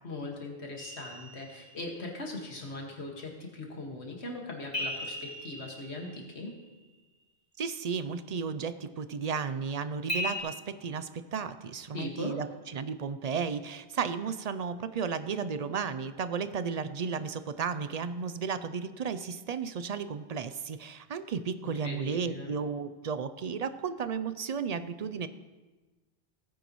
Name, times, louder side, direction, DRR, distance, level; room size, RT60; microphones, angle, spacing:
voice 1, 0.0-6.5 11.9-12.4 21.6-22.5, left 2 dB, 80° left, 0 dB, 2.1 m, -40 dB
sound 1, 0.8-2.1 4.7-6.7 10.1-10.4, left 1 dB, 30° left, 4.5 m, -37 dB
voice 2, 7.6-12.5 12.7-25.3, right 6 dB, 55° right, 12 dB, 0.5 m, -34 dB
17.5 x 9.3 x 3.1 m, 1.2 s
omnidirectional pair, 1.1 m